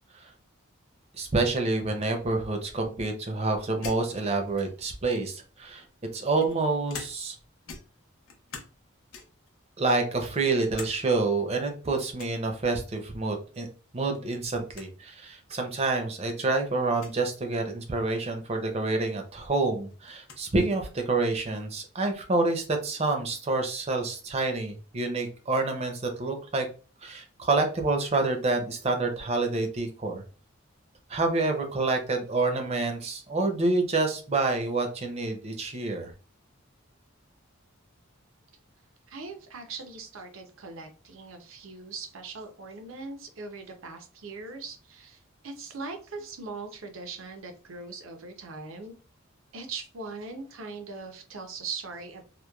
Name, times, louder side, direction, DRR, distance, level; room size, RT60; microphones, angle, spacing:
voice 1, 1.1-5.8 6.1-7.3 9.8-13.7 13.9-26.7 27.0-30.2 31.1-36.1, right 3 dB, 30° right, 4 dB, 0.5 m, -28 dB
sound 1, 3.8-5.0 5.8-7.4 7.7-8.8 9.1-9.5 10.0-11.0 11.3-11.4 12.2-12.4 13.9-14.2 14.5-14.6 14.7-14.9 15.7-15.8 16.9-17.2 18.9-19.0 19.3-20.5, left 5 dB, 80° left, 0.6 m, -44 dB
voice 2, 39.1-48.9 49.5-52.2, right 4 dB, 75° right, 5 dB, 0.6 m, -40 dB
3.0 x 2.1 x 2.2 m, 0.37 s
head